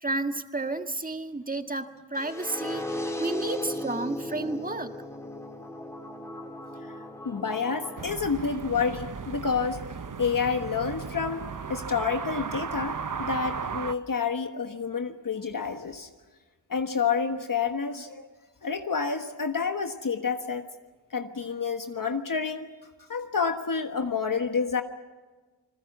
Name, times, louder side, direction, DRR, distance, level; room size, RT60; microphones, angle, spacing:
voice 1, 0.0-4.9, right 2 dB, 20° right, 6 dB, 1.7 m, -32 dB
sound 1, 2.2-8.1, left 1 dB, 5° left, 2.8 m, -36 dB
voice 2, 7.2-9.8 10.2-11.4 11.7-16.1 16.7-18.3 18.6-20.7 21.1-22.7 23.1-24.8, left 5 dB, 50° left, 6 dB, 1.4 m, -29 dB
sound 2, 8.0-13.9, right 6 dB, 45° right, 0.9 m, -36 dB
28.5 x 21.0 x 7.3 m, 1.3 s
wide cardioid pair, 95°, 43 cm